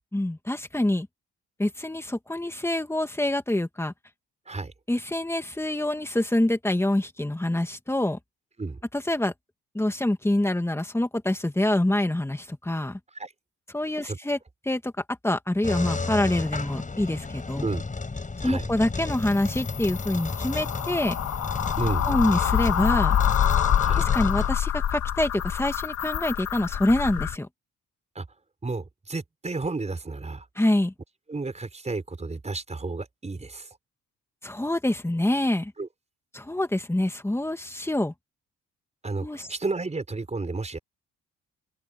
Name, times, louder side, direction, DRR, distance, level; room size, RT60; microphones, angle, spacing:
voice 1, 0.1-1.1 1.6-3.9 4.9-8.2 8.9-9.3 9.7-13.0 13.7-14.4 14.7-14.9 15.2-17.7 18.4-21.2 22.1-23.2 24.0-27.5 30.6-30.9 34.4-35.7 36.3-38.1 39.2-39.5, left 1 dB, 10° left, 2.4 m, -26 dB
sound 1, 15.6-24.5, left 3 dB, 25° left, 7.0 m, -33 dB
sound 2, 19.2-27.4, left 10 dB, 65° left, 3.0 m, -26 dB
voice 2, 21.8-22.1 23.8-24.0 28.2-28.3 28.6-30.5 31.3-33.7 35.8-35.9 39.0-40.8, right 3 dB, 20° right, 5.3 m, -32 dB
open air
cardioid pair, 90°, 30 cm